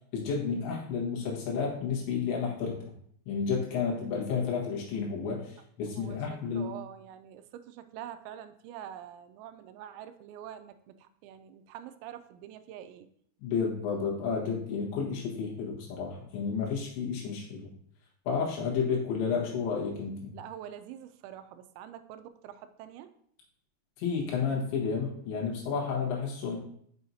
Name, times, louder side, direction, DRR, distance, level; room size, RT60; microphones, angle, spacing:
voice 1, 0.1-2.8 3.3-6.7 13.4-17.7 18.3-20.3 24.0-26.6, left 5 dB, 80° left, -3 dB, 3.8 m, -31 dB
voice 2, 5.9-13.1 20.3-23.1, right 10 dB, 90° right, 10 dB, 2.9 m, -45 dB
7.6 x 5.6 x 2.7 m, 0.65 s
omnidirectional pair, 5.1 m